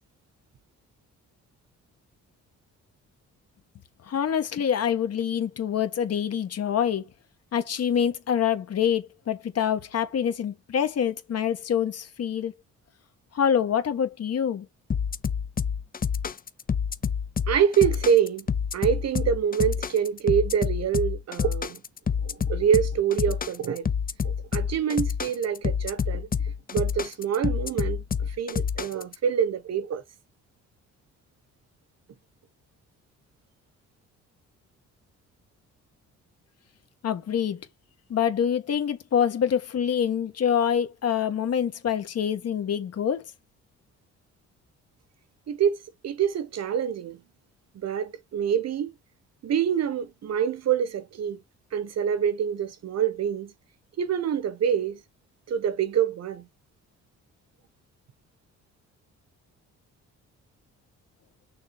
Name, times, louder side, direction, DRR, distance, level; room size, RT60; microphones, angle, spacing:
voice 1, 4.1-7.0 7.5-12.5 13.3-14.7 37.0-37.6 38.1-43.2, left 8 dB, 55° left, 1.5 m, -26 dB
sound 1, 14.9-29.2, left 7 dB, 30° left, 0.7 m, -28 dB
voice 2, 17.5-18.5 18.7-21.8 22.2-23.9 24.2-26.3 26.7-30.0 45.5-47.2 47.7-48.9 49.4-51.4 51.7-53.5 54.0-55.0 55.5-56.5, right 8 dB, 55° right, 1.4 m, -26 dB
6.5 x 3.5 x 4.5 m
cardioid pair, 90°, 30 cm